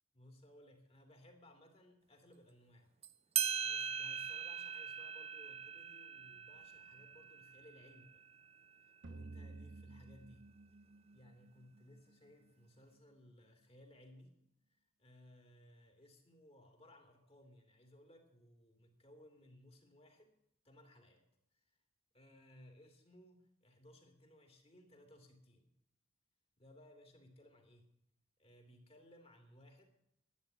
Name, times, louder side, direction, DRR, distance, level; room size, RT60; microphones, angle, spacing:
voice 1, 0.1-2.9 3.3-8.2 8.8-10.4 11.1-14.3 14.7-20.3 20.6-21.2 21.6-21.7 22.1-25.7 26.6-27.9 28.4-29.9, left 1 dB, 30° left, 5 dB, 2.7 m, -62 dB
sound 1, 3.0-3.1 3.4-8.4, right 8 dB, 30° right, 0.5 m, -41 dB
sound 2, 9.0-12.3, right 3 dB, 60° right, 0.9 m, -53 dB
11.5 x 9.3 x 9.4 m, 0.79 s
head